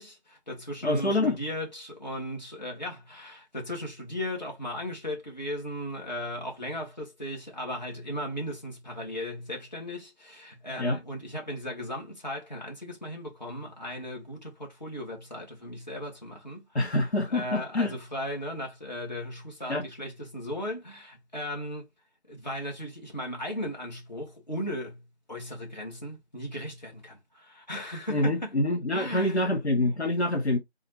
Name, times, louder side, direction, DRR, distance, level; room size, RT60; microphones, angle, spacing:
voice 1, 0.0-17.0 17.3-21.9 22.3-28.6 28.9-29.6, left 1 dB, 40° left, 1.6 m, -37 dB
voice 2, 0.8-1.4 10.8-11.0 16.7-17.9 19.7-19.8 28.1-30.6, left 1 dB, 75° left, 1.1 m, -26 dB
3.9 x 2.4 x 3.1 m
figure-of-eight pair, 175°, 33 cm